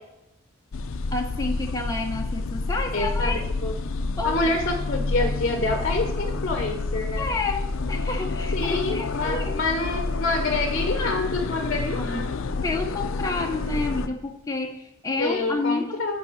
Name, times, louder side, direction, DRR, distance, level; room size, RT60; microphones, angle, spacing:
sound 1, 0.7-14.1, left 3 dB, 75° left, 0.5 m, -29 dB
voice 1, 1.1-3.5 4.2-4.4 7.2-9.6 12.0-12.4 12.6-16.0, left 3 dB, 15° left, 1 dB, 0.7 m, -30 dB
voice 2, 2.9-3.7 4.2-7.3 8.5-12.2 15.2-16.2, left 2 dB, 45° left, 4 dB, 0.8 m, -27 dB
5.8 x 4.8 x 6.3 m, 0.89 s
head